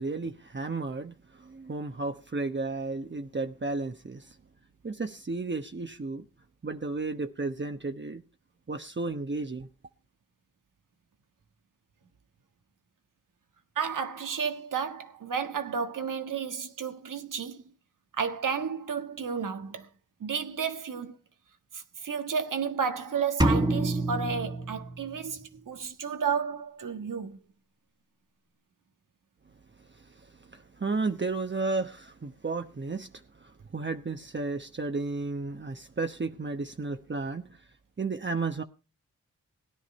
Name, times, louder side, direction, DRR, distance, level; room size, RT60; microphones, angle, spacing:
voice 1, 0.0-4.4 4.8-6.2 6.6-8.2 8.7-9.7 29.9-37.6 38.0-38.6, right 3 dB, 35° right, 1.1 m, -33 dB
voice 2, 13.7-17.6 18.1-19.9 20.2-21.2 21.7-27.4, right 6 dB, 85° right, 1.6 m, -32 dB
sound 1, 23.4-25.4, right 1 dB, 15° right, 1.8 m, -27 dB
17.0 x 10.5 x 4.3 m
cardioid pair, 45°, 31 cm